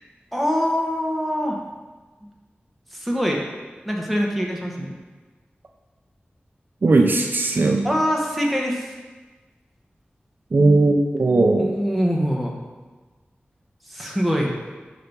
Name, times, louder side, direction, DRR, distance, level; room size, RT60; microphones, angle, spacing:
voice 1, 0.3-1.6 2.9-3.4 3.8-4.9 7.8-8.9 11.6-12.5 13.9-14.5, equal, ahead, -1 dB, 1.0 m, -23 dB
voice 2, 6.8-7.9 10.5-11.8, right 2 dB, 55° right, 3 dB, 0.4 m, -18 dB
5.6 x 3.4 x 5.3 m, 1.3 s
wide cardioid pair, 80°, 4 cm